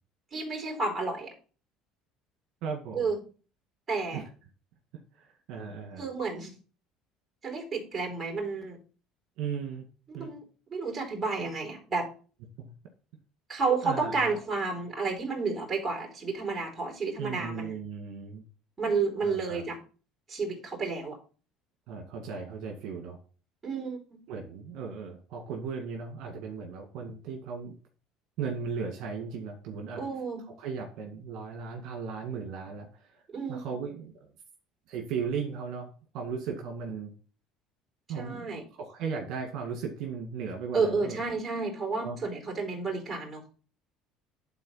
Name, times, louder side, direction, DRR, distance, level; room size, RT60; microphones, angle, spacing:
voice 1, 0.3-1.3 2.9-3.2 3.9-4.2 6.0-6.5 7.4-8.8 10.1-10.4 10.7-12.1 13.5-17.8 18.8-19.8 20.3-21.2 23.6-24.0 29.9-30.4 33.3-33.8 38.1-38.6 40.7-43.5, right 4 dB, 25° right, 0 dB, 4.2 m, -31 dB
voice 2, 2.6-3.1 4.1-4.2 5.2-6.1 9.4-9.8 10.1-10.3 12.6-12.7 13.8-14.4 17.2-18.4 19.2-19.7 21.9-23.2 24.3-27.7 28.4-30.0 30.6-33.2 33.5-34.1 34.9-37.1 38.1-41.2 42.0-42.2, right 6 dB, 65° right, 2 dB, 2.0 m, -36 dB
10.5 x 4.3 x 5.7 m, 0.38 s
supercardioid pair, 110°, 0 cm